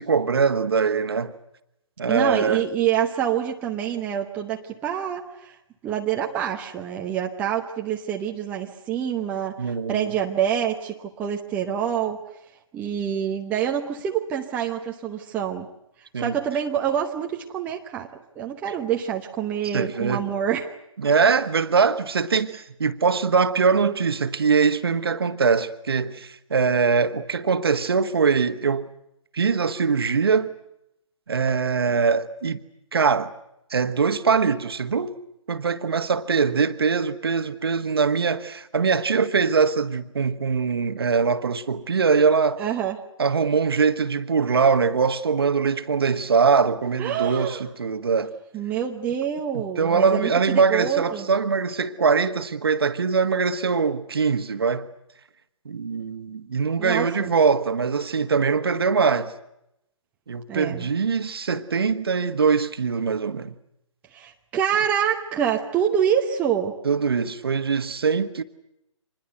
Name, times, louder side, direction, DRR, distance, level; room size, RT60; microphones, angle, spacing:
voice 1, 0.0-1.3 2.0-2.6 9.6-10.1 16.1-16.4 19.7-20.3 21.0-28.9 29.3-30.5 31.3-32.6 32.9-33.3 33.7-35.1 35.5-42.6 43.2-48.3 49.5-54.9 55.7-59.3 60.3-63.5 66.8-68.4, right 5 dB, 50° right, 1.6 m, -22 dB
voice 2, 2.1-5.5 5.8-12.2 12.7-15.7 16.2-18.1 18.4-20.7 42.6-43.0 47.0-47.6 48.5-51.3 56.8-57.3 60.5-60.9 64.1-66.8, right 9 dB, 10° right, 1.0 m, -26 dB
26.0 x 21.0 x 8.0 m
figure-of-eight pair, 140°, 17 cm